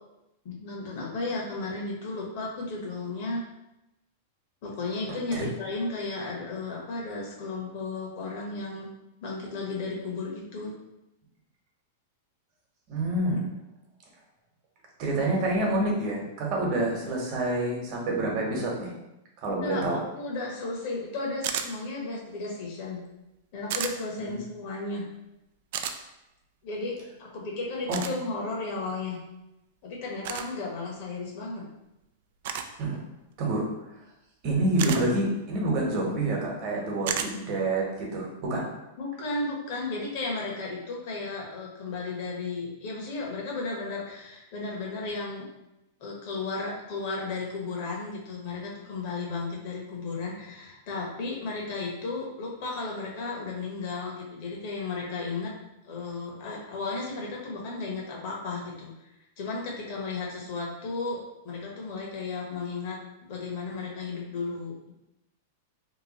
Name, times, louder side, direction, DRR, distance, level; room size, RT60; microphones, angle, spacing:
voice 1, 0.4-3.4 4.6-8.9 9.2-10.8 19.5-23.0 23.5-25.1 26.6-29.2 29.8-31.6 39.0-45.5 46.0-55.5 55.8-58.9 59.4-64.7, left 3 dB, 55° left, -2 dB, 1.1 m, -34 dB
voice 2, 12.9-13.5 15.0-18.9 19.4-20.0 24.2-24.4 27.9-28.0 32.8-33.0 33.4-33.6 34.4-38.7, right 2 dB, 45° right, -2 dB, 1.1 m, -27 dB
sound 1, 21.4-21.7 23.7-23.9 25.7-26.0 27.9-28.1 30.2-30.5 32.4-32.7 34.8-35.0 37.1-37.3, right 8 dB, 60° right, 0.3 m, -31 dB
3.0 x 2.3 x 4.0 m, 0.93 s
supercardioid pair, 140°, 0 cm